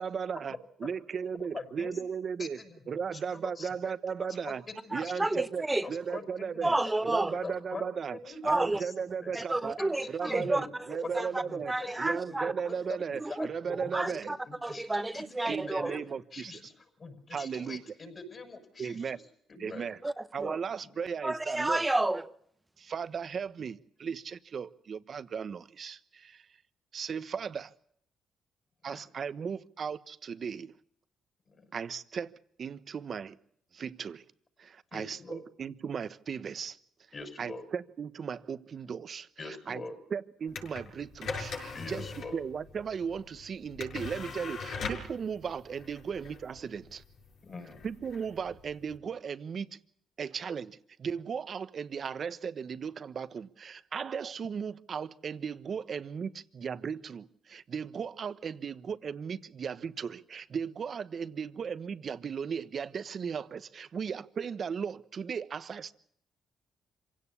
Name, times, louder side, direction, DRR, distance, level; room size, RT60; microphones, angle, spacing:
voice 1, 0.0-0.5 0.8-2.6 2.9-4.6 4.9-6.7 7.1-8.2 8.4-9.8 10.1-11.7 12.0-14.3 15.4-16.5 17.3-17.8 18.8-19.2 19.6-20.0 20.3-21.8 22.8-26.5 26.9-27.7 28.8-30.7 31.7-32.3 32.6-33.3 33.7-34.2 34.6-36.8 37.4-39.8 40.1-42.1 42.3-47.0 47.8-49.8 50.2-65.9, right 6 dB, 50° right, 1.2 m, -36 dB
voice 2, 1.4-2.0 2.4-2.7 3.1-3.7 4.2-5.4 5.8-6.7 7.4-7.9 8.1-8.9 9.2-9.4 9.8-10.7 11.1-12.4 12.7-16.7 17.0-19.2 19.5-19.9 20.8-20.9 28.9-29.0 31.5-31.7 34.9-35.4 37.1-37.7 39.4-40.0 41.7-42.4 47.4-47.9, left 3 dB, 35° left, 6.4 m, -44 dB
voice 3, 4.9-5.9 6.6-7.4 8.4-8.8 9.3-10.7 11.0-12.5 13.2-16.0 20.0-20.6 21.2-22.2, right 2 dB, 15° right, 1.1 m, -31 dB
sound 1, 40.5-49.0, left 4 dB, 70° left, 6.9 m, -41 dB
26.0 x 17.0 x 8.5 m
cardioid pair, 90°, 0 cm